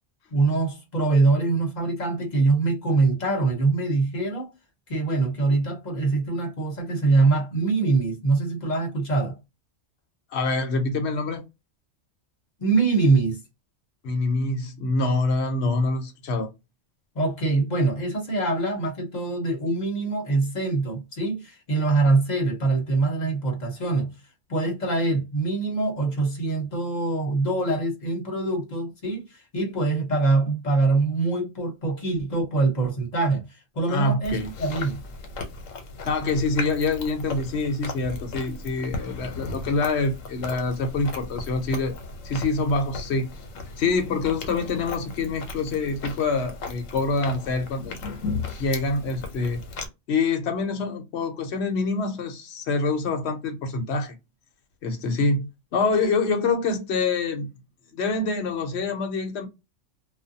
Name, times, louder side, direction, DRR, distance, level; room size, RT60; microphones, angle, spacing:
voice 1, 0.3-4.5 4.9-9.3 12.6-13.4 17.1-24.1 24.5-33.4 33.7-35.0, right 3 dB, 40° left, 0.9 m, -24 dB
voice 2, 10.3-11.4 14.0-16.5 33.9-34.5 36.0-42.0 42.2-43.3 43.8-47.9 48.6-49.6 50.1-54.2 54.8-57.5 57.9-59.5, left 3 dB, 65° left, 0.9 m, -26 dB
Chewing mastication, 34.2-49.9, left 3 dB, 85° left, 1.1 m, -36 dB
2.5 x 2.2 x 2.6 m
omnidirectional pair, 1.3 m